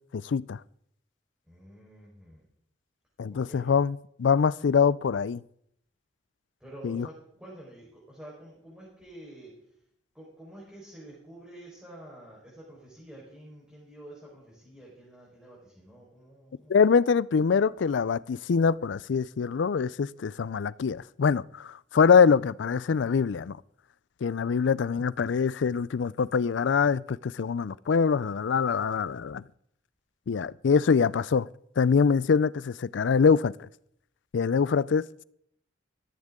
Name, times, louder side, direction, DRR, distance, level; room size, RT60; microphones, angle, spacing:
voice 1, 0.1-0.6 3.2-5.4 6.8-7.1 16.7-23.6 24.2-29.4 30.3-31.5 31.8-33.7 34.3-35.2, left 6 dB, 75° left, 0.4 m, -24 dB
voice 2, 1.5-2.4 3.3-3.7 6.6-9.5 10.1-16.8, right 1 dB, 5° right, 4.4 m, -48 dB
14.5 x 14.0 x 3.7 m
head